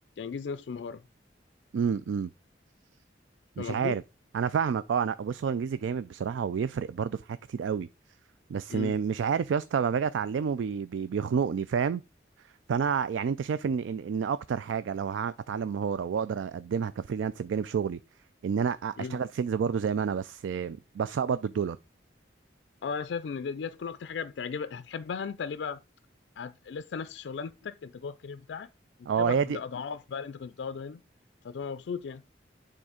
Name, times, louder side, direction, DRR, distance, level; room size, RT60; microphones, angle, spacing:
voice 1, 0.2-1.0 3.6-3.9 8.7-8.9 19.0-19.2 22.8-25.8 26.4-28.7 29.2-31.0 31.4-32.2, left 5 dB, 70° left, 0.4 m, -36 dB
voice 2, 1.7-2.3 3.6-4.0 4.3-7.9 8.5-12.0 12.7-18.0 18.4-21.8 29.1-29.6, right 6 dB, 90° right, 0.3 m, -29 dB
8.7 x 3.8 x 4.9 m
head